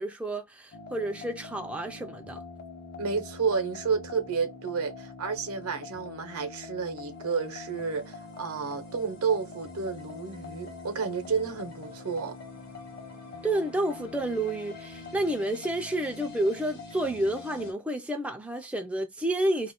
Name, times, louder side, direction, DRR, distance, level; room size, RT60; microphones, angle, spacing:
voice 1, 0.0-2.4 13.4-19.7, right 1 dB, 5° right, 0.3 m, -30 dB
sound 1, 0.7-17.7, left 3 dB, 45° left, 0.9 m, -44 dB
voice 2, 3.0-12.4, right 5 dB, 80° right, 0.7 m, -31 dB
2.4 x 2.1 x 3.5 m
head